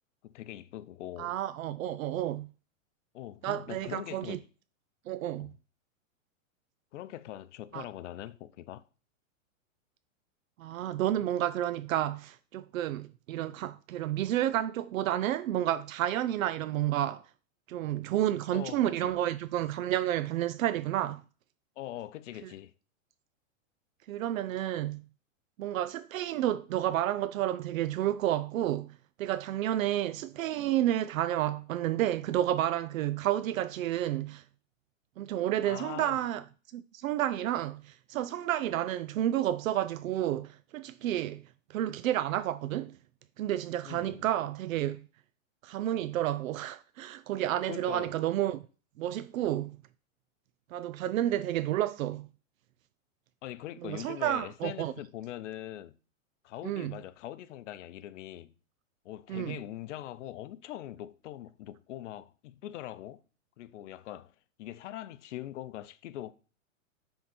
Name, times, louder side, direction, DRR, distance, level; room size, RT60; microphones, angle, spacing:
voice 1, 0.2-1.3 3.1-4.5 5.4-5.5 6.9-8.9 18.5-19.1 21.8-22.7 35.6-36.2 43.9-44.3 47.7-48.1 53.4-56.0 56.4-58.5 59.0-63.2 63.6-64.3 64.6-66.3, left 13 dB, 65° left, 0.6 m, -42 dB
voice 2, 1.2-2.5 3.4-4.4 5.1-5.5 7.7-7.8 10.6-17.2 17.7-21.2 24.1-25.0 25.6-28.9 29.2-34.4 35.2-36.4 36.7-41.4 41.7-42.9 43.4-45.0 45.6-48.6 49.0-49.8 50.7-52.3 53.8-54.9 56.6-57.0 59.3-59.6, right 12 dB, 85° right, 0.5 m, -30 dB
8.2 x 3.8 x 4.3 m
hypercardioid pair, 150°, 40 cm